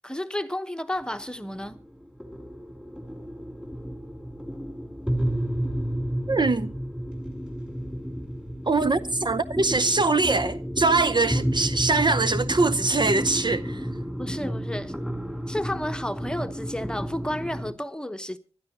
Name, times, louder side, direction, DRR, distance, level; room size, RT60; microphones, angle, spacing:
voice 1, 0.0-1.8 14.2-14.9 15.5-18.4, left 1 dB, 10° left, 1.0 m, -32 dB
sound 1, 0.9-17.7, equal, 10° right, 3.1 m, -31 dB
voice 2, 6.3-6.7 8.7-13.8, right 3 dB, 45° right, 0.6 m, -23 dB
25.5 x 12.0 x 2.8 m
wide cardioid pair, 65°, 11 cm